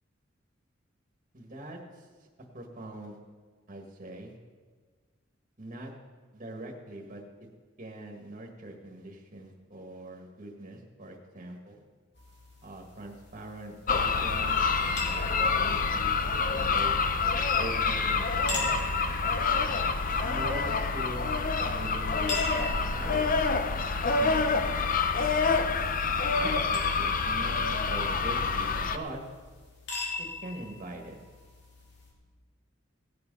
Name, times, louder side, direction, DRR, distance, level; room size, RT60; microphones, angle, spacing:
voice 1, 1.3-2.1 2.5-3.2 3.7-4.3 5.6-5.9 6.3-7.2 7.8-11.8 12.6-14.6 14.8-16.2 16.5-16.9 17.6-18.6 20.1-22.4 22.7-23.3 24.2-24.8 26.4-29.2 30.2-31.2, right 1 dB, 40° right, 0 dB, 1.6 m, -42 dB
sound 1, 12.1-32.1, left 2 dB, 60° left, 3.2 m, -42 dB
sound 2, 13.9-29.0, left 4 dB, 45° left, 0.7 m, -27 dB
17.0 x 7.8 x 5.4 m, 1.5 s
head